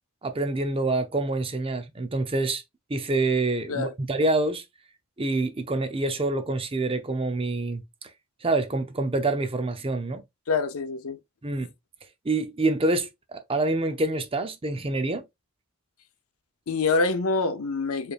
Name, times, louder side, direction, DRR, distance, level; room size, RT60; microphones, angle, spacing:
voice 1, 0.2-2.6 2.9-4.6 5.2-7.8 8.4-10.2 11.4-11.7 12.2-15.2, right 2 dB, 25° right, 0.6 m, -26 dB
voice 2, 10.5-11.2 16.7-18.1, left 4 dB, 75° left, 0.6 m, -26 dB
4.9 x 3.2 x 2.4 m
head